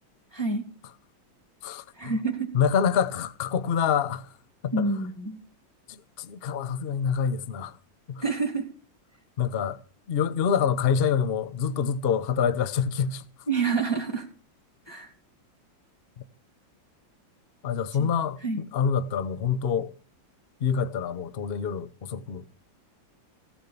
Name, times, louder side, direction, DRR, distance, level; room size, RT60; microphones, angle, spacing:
voice 1, 0.3-0.7 2.0-2.5 4.7-5.4 8.2-8.7 13.5-14.3 14.9-15.1 18.0-18.1 18.4-18.6, right 4 dB, 15° left, 2.0 m, -28 dB
voice 2, 1.6-2.1 2.5-4.3 4.6-4.9 5.9-7.7 8.1-8.2 9.4-9.8 10.1-13.2 17.6-19.9 20.6-22.5, left 7 dB, 50° left, 0.7 m, -26 dB
16.5 x 6.7 x 8.5 m
omnidirectional pair, 2.1 m